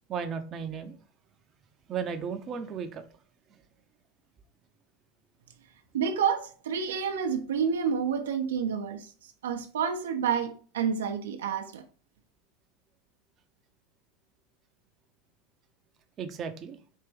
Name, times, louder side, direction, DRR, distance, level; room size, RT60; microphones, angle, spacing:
voice 1, 0.1-1.0 1.9-3.0 16.2-16.8, right 6 dB, 40° right, 0.6 m, -34 dB
voice 2, 5.9-9.1 9.4-11.8, right 7 dB, 85° right, 0.6 m, -29 dB
4.5 x 2.9 x 3.2 m
hypercardioid pair, 90°, 0 cm